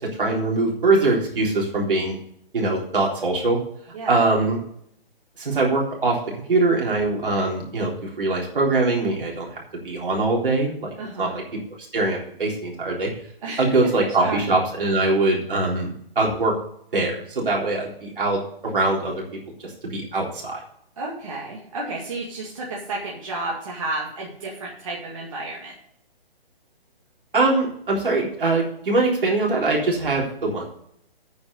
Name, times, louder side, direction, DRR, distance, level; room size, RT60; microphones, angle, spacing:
voice 1, 0.2-2.2 2.5-3.6 4.1-4.6 5.4-6.2 6.5-10.9 11.2-11.4 11.9-13.1 13.6-16.5 16.9-19.2 19.6-20.6 27.3-30.7, right 2 dB, 60° right, -2 dB, 3.8 m, -22 dB
voice 2, 11.0-11.3 13.4-13.7 14.2-14.4 21.0-25.7, right 2 dB, 35° right, -4 dB, 2.0 m, -31 dB
9.4 x 5.3 x 8.2 m, 0.69 s
hypercardioid pair, 175°, 30 cm